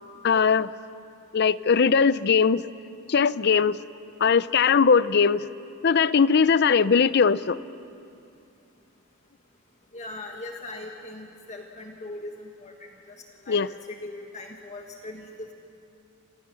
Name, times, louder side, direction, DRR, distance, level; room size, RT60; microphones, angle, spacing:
voice 1, 0.2-0.7 1.3-2.6 3.1-3.8 4.2-5.4 5.8-7.6 13.5-13.7, left 6 dB, 50° left, 17 dB, 0.5 m, -20 dB
voice 2, 9.9-13.1 13.4-15.5, left 2 dB, 35° left, 2 dB, 1.5 m, -40 dB
29.5 x 27.0 x 6.4 m, 2.6 s
head